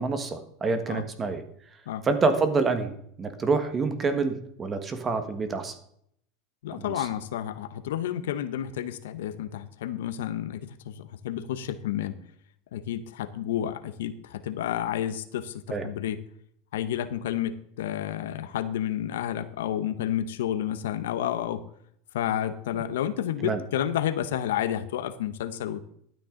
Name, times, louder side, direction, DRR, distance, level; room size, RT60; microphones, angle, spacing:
voice 1, 0.0-1.4 2.0-2.9 3.2-5.7 6.8-7.1 15.7-15.9 22.7-22.8 23.4-23.6, right 4 dB, 25° right, 8 dB, 1.5 m, -27 dB
voice 2, 6.6-12.2 12.7-16.2 16.7-21.6 22.1-25.8, left 11 dB, 90° left, 12 dB, 0.9 m, -30 dB
12.5 x 9.1 x 3.9 m, 0.68 s
supercardioid pair, 130°, 0 cm